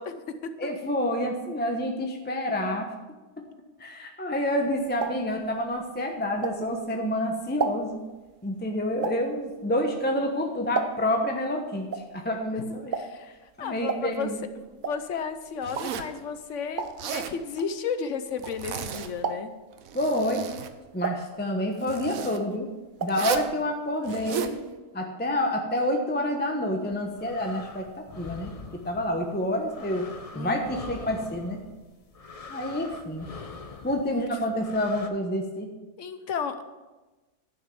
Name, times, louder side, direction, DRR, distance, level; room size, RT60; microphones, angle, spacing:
voice 1, 0.0-0.7 12.5-13.3 13.6-14.3 14.5-19.5 30.3-30.8 34.0-34.3 36.0-36.6, left 6 dB, 65° left, 10 dB, 1.1 m, -34 dB
voice 2, 0.6-2.9 3.8-8.0 8.4-13.0 13.6-14.4 19.9-20.4 20.9-22.7 23.0-24.6 24.9-28.5 28.8-30.1 30.3-31.6 32.5-33.3 33.8-35.7, left 1 dB, 10° left, 2 dB, 0.9 m, -28 dB
sound 1, 4.4-7.0 7.3-11.3 11.6-18.9 19.2-19.7 20.2-21.9 22.2-23.3 23.6-23.7 23.9-24.0, right 5 dB, 45° right, 0.8 m, -34 dB
Zipper (clothing), 15.6-16.2 16.8-17.4 18.4-19.3 19.7-20.7 21.8-22.4 23.1-23.5 24.0-24.6, right 9 dB, 80° right, 1.2 m, -34 dB
sound 2, 26.7-35.1, left 4 dB, 35° left, 0.6 m, -44 dB
11.0 x 6.2 x 6.9 m, 1.2 s
omnidirectional pair, 1.4 m